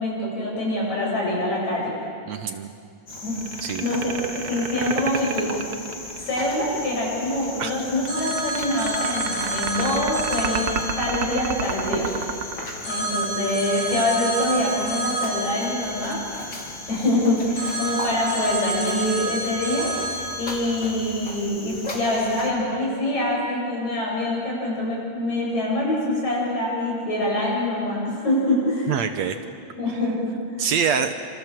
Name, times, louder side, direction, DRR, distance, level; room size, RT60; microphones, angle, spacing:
voice 1, 0.0-1.9 3.2-5.6 6.2-12.1 12.9-16.3 16.9-29.0 29.8-30.6, left 1 dB, 60° left, -3 dB, 9.4 m, -25 dB
voice 2, 2.3-2.7 3.6-3.9 7.6-7.7 28.9-29.4 30.6-31.1, right 7 dB, 70° right, 8 dB, 2.0 m, -24 dB
Cricket, 3.1-22.5, left 2 dB, 35° left, 4.2 m, -37 dB
sound 1, 3.4-6.5 8.0-13.5, right 6 dB, 85° right, 0.8 m, -30 dB
Telephone, 8.1-12.4 12.8-17.1 17.6-20.4, right 2 dB, 75° left, 8.5 m, -30 dB
28.5 x 27.0 x 7.6 m, 2.4 s
omnidirectional pair, 3.6 m